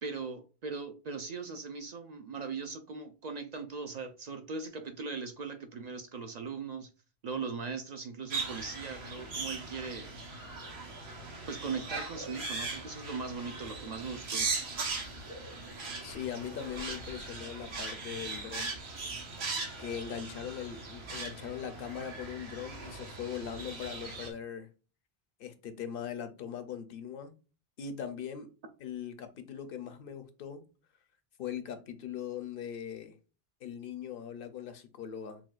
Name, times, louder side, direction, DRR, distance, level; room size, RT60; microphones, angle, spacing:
voice 1, 0.0-6.9 7.2-10.1 11.5-14.5, right 4 dB, 55° right, 0.5 m, -39 dB
sound 1, 8.3-24.3, right 3 dB, 85° right, 1.2 m, -39 dB
voice 2, 16.0-18.8 19.8-24.7 25.4-27.3 27.8-28.5 28.8-30.6 31.4-33.2 33.6-35.4, left 8 dB, 65° left, 0.8 m, -40 dB
5.9 x 2.2 x 2.4 m
omnidirectional pair, 1.0 m